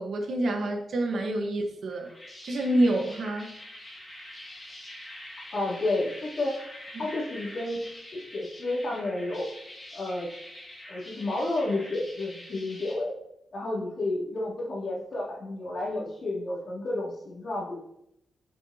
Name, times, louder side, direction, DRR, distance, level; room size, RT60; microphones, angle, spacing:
voice 1, 0.0-2.1 2.4-3.5, right 1 dB, 55° right, 3 dB, 1.5 m, -27 dB
sound 1, 1.9-12.9, left 1 dB, 15° left, 2.4 m, -45 dB
voice 2, 5.5-6.5 7.0-7.9 8.1-9.5 9.9-10.3 10.9-13.1 13.5-17.8, left 2 dB, 45° left, -7 dB, 3.4 m, -31 dB
9.5 x 7.3 x 3.0 m, 0.77 s
wide cardioid pair, 170°, 0 cm